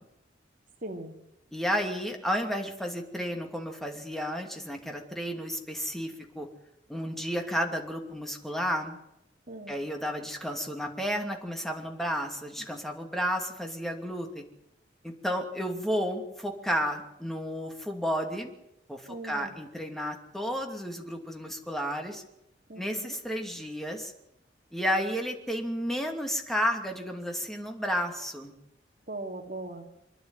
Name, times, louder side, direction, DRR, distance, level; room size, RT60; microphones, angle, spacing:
voice 1, 0.8-1.1 9.5-9.8 19.1-19.5 22.7-23.1 29.1-29.9, right 2 dB, 45° right, 2 dB, 2.8 m, -39 dB
voice 2, 1.5-6.5 6.9-9.0 9.7-14.4 15.0-18.5 18.9-22.2 22.8-24.1 24.7-28.5, equal, ahead, 3 dB, 2.7 m, -32 dB
26.5 x 11.0 x 9.8 m, 0.84 s
head